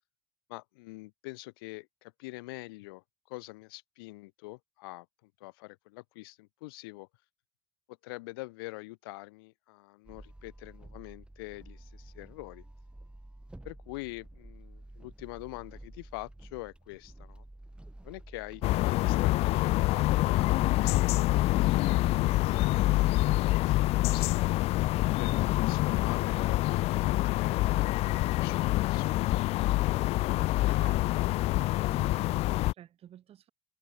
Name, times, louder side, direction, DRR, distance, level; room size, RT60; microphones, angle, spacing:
voice 1, 0.5-7.1 7.9-12.6 13.6-17.4 18.0-20.5 20.8-24.6 25.2-29.5, left 23 dB, 75° left, 3.0 m, -45 dB
sound 1, 10.0-23.1, right 1 dB, 10° right, 1.9 m, -50 dB
sound 2, 18.6-32.7, left 18 dB, 60° left, 0.4 m, -26 dB
voice 2, 30.7-31.4 31.9-33.5, right 11 dB, 55° right, 5.9 m, -52 dB
figure-of-eight pair, 55°, 12 cm